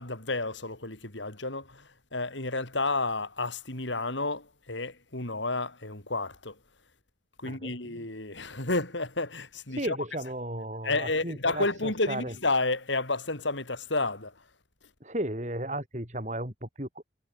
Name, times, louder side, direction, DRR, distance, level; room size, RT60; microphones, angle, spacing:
voice 1, 0.0-6.6 7.4-10.0 10.8-14.3, left 2 dB, 75° left, 4.7 m, -31 dB
voice 2, 7.4-8.1 9.7-12.4 15.0-17.1, right 1 dB, 40° right, 5.6 m, -35 dB
head